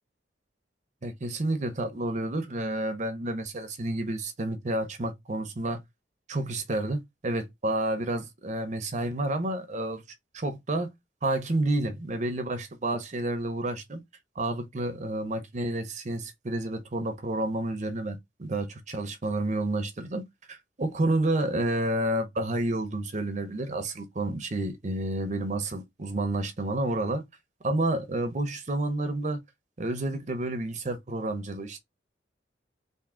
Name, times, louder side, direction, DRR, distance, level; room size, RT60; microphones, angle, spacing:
voice 1, 1.0-5.8 6.3-10.0 10.3-10.9 11.2-14.0 14.4-20.2 20.5-27.2 27.6-29.4 29.8-31.8, right 1 dB, 40° right, 0.6 m, -30 dB
3.5 x 2.6 x 3.7 m
head